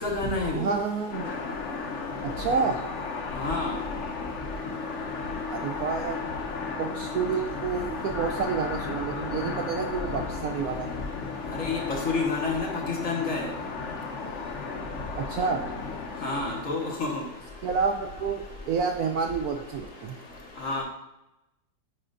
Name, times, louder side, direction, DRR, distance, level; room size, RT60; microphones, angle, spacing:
voice 1, 0.0-0.7 3.4-3.8 11.6-11.8 12.1-12.7 13.0-13.5 16.2-17.2 20.6-20.8, left 3 dB, 50° left, -2 dB, 1.4 m, -28 dB
voice 2, 0.5-1.3 2.2-2.8 5.5-6.2 6.8-10.9 15.2-15.6 17.6-20.2, right 5 dB, 70° right, 4 dB, 0.9 m, -29 dB
sound 1, 1.1-17.1, left 4 dB, 65° left, 0.7 m, -34 dB
8.5 x 5.1 x 2.5 m, 0.95 s
omnidirectional pair, 1.9 m